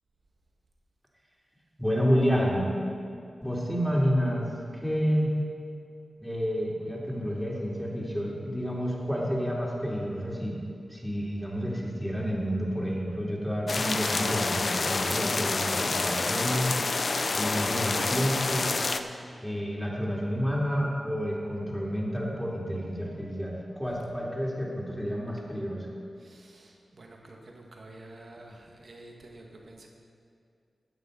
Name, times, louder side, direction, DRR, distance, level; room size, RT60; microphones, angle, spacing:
voice 1, 1.8-2.7 3.4-5.3 6.2-10.6 10.9-17.0 17.3-18.8 19.4-25.9, equal, ahead, -4 dB, 2.9 m, -29 dB
sound 1, 13.7-19.0, left 3 dB, 60° left, 0.6 m, -28 dB
voice 2, 26.2-29.9, right 2 dB, 65° right, 0 dB, 1.8 m, -49 dB
16.0 x 6.5 x 5.4 m, 2.4 s
cardioid pair, 45°, 0 cm